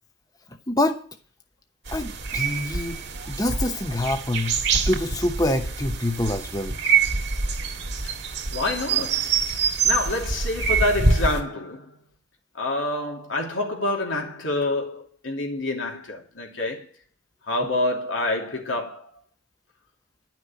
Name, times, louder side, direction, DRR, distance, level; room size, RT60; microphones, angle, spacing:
voice 1, 1.9-3.0 3.3-4.6 4.9-6.7, left 1 dB, 20° left, 0.9 m, -25 dB
sound 1, 1.9-11.4, right 5 dB, 60° right, 1.8 m, -25 dB
voice 2, 8.5-9.3 9.8-11.9 12.6-16.9 17.5-19.0, left 2 dB, 85° left, 3.0 m, -27 dB
11.5 x 6.1 x 9.0 m
head